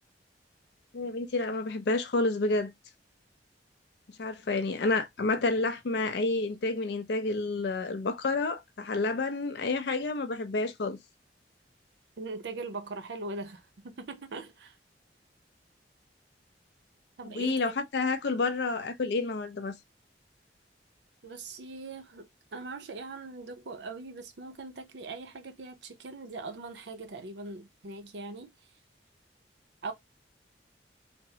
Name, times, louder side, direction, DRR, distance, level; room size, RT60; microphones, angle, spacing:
voice 1, 0.9-2.7 4.2-11.0 17.2-19.7, left 3 dB, 65° left, 0.4 m, -29 dB
voice 2, 12.2-14.8 17.2-17.7 21.2-22.3 22.5-28.5 29.8-29.9, right 3 dB, 70° right, 0.6 m, -41 dB
3.5 x 2.0 x 2.7 m
head